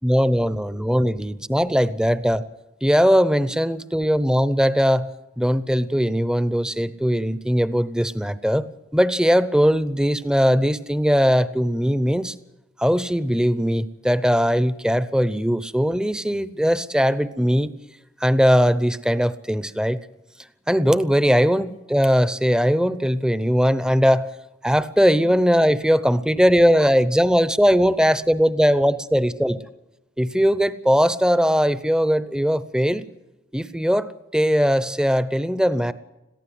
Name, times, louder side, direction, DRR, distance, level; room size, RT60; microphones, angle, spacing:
voice 1, 0.0-2.4 2.8-8.7 8.9-12.3 12.8-17.7 18.2-20.0 20.7-24.3 24.6-29.6 30.2-33.0 33.5-35.9, equal, 5° right, 14 dB, 0.7 m, -20 dB
22.0 x 15.0 x 7.8 m, 1.0 s
head